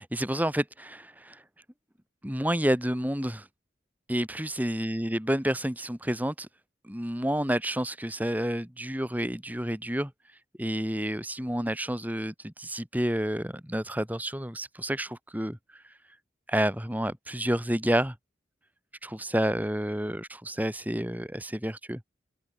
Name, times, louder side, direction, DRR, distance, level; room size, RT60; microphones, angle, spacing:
voice 1, 0.0-1.4 2.2-3.4 4.1-6.5 6.9-10.1 10.6-15.6 16.5-18.1 19.0-22.0, equal, 10° right, 3.0 m, -29 dB
open air
head